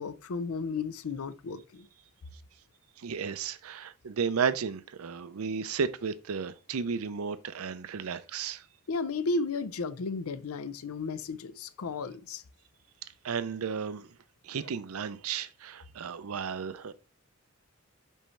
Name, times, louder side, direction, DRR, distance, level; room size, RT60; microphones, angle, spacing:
voice 1, 0.0-1.9 8.9-12.4, left 3 dB, 85° left, 0.5 m, -34 dB
voice 2, 3.0-8.6 13.2-14.1 14.4-16.9, right 6 dB, 85° right, 0.5 m, -33 dB
5.4 x 3.1 x 5.5 m
head